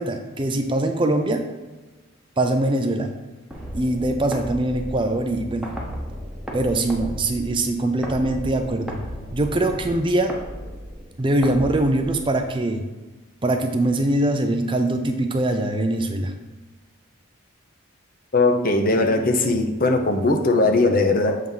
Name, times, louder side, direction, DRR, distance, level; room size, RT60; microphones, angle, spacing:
voice 1, 0.0-1.4 2.4-3.1 3.7-5.7 6.5-9.0 9.3-10.4 11.2-12.8 13.4-16.3, right 1 dB, 25° right, 5 dB, 0.5 m, -22 dB
sound 1, 3.5-12.6, equal, 5° right, 0.9 m, -35 dB
voice 2, 18.3-21.4, left 2 dB, 40° left, 4 dB, 0.7 m, -19 dB
7.4 x 3.5 x 5.5 m, 1.2 s
head